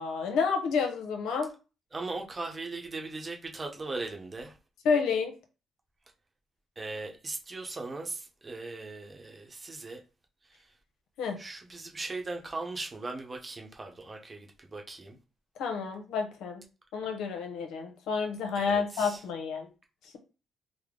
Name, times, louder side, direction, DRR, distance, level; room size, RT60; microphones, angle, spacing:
voice 1, 0.0-1.5 4.8-5.3 11.2-11.4 15.6-16.6 16.9-19.7, left 5 dB, 85° left, 0.8 m, -29 dB
voice 2, 1.9-4.6 6.8-10.0 10.4-10.7 11.4-15.2 18.5-19.2, right 3 dB, 30° right, 0.9 m, -39 dB
3.6 x 2.0 x 3.7 m
cardioid pair, 90°, 0 cm